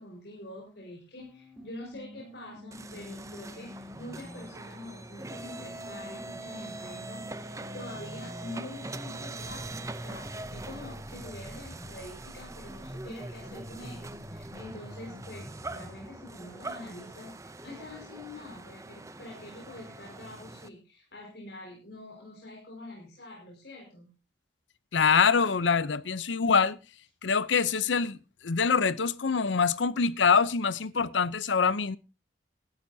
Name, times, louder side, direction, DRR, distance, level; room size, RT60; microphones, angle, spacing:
voice 1, 0.0-24.1, left 1 dB, 65° left, 5.1 m, -45 dB
sound 1, 1.2-4.5 5.2-12.2 12.7-16.2, equal, ahead, 3.2 m, -46 dB
sound 2, 2.7-20.7, right 2 dB, 15° right, 0.6 m, -43 dB
voice 2, 24.9-26.8 27.2-28.2 28.4-32.0, left 5 dB, 85° left, 0.7 m, -24 dB
19.0 x 12.5 x 2.8 m
head